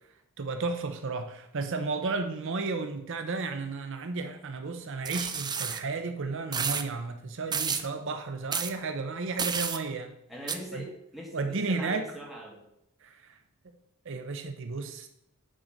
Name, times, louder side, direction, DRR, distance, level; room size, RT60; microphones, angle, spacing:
voice 1, 0.4-10.1 10.7-10.9 11.3-12.1 13.0-13.4 14.0-15.1, right 3 dB, 65° right, 7 dB, 0.7 m, -33 dB
sound 1, 5.0-5.8 6.5-6.8 7.5-7.9 8.5-8.7 9.4-9.8 10.5-10.6, right 6 dB, 20° right, 0.5 m, -30 dB
voice 2, 10.3-12.6, equal, ahead, -3 dB, 2.2 m, -42 dB
8.9 x 3.9 x 6.5 m, 0.80 s
head